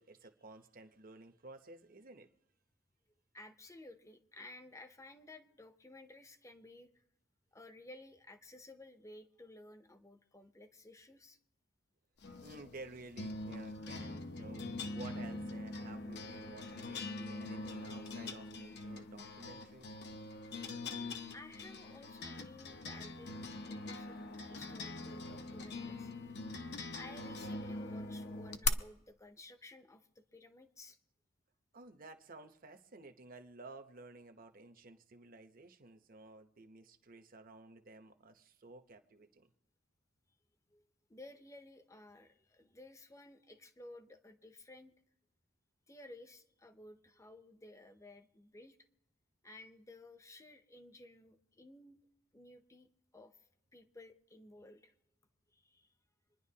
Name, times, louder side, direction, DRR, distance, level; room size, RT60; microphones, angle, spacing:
voice 1, 0.0-2.3 12.4-19.9 31.7-39.5, right 2 dB, 45° right, 7 dB, 0.9 m, -54 dB
voice 2, 3.3-7.0 7.5-11.4 21.3-26.1 26.9-31.0 40.7-44.9 45.9-48.8 49.4-52.0 52.3-52.9 53.1-53.4 53.7-54.9 55.5-55.9, left 2 dB, 15° left, 9 dB, 0.7 m, -55 dB
sound 1, 12.2-28.7, left 3 dB, 55° left, 0.7 m, -43 dB
26.0 x 10.5 x 2.8 m, 0.84 s
head